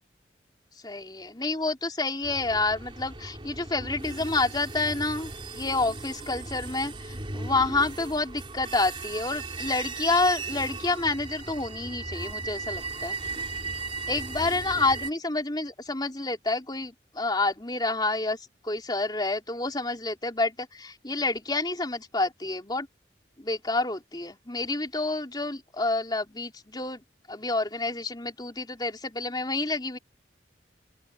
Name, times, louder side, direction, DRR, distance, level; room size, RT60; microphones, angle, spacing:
voice 1, 0.8-6.9 7.3-13.1 14.1-18.4 18.6-22.9 23.4-27.0 27.3-30.0, left 3 dB, 25° left, 3.6 m, -28 dB
sound 1, 2.2-15.1, right 3 dB, 30° right, 3.4 m, -37 dB
open air
head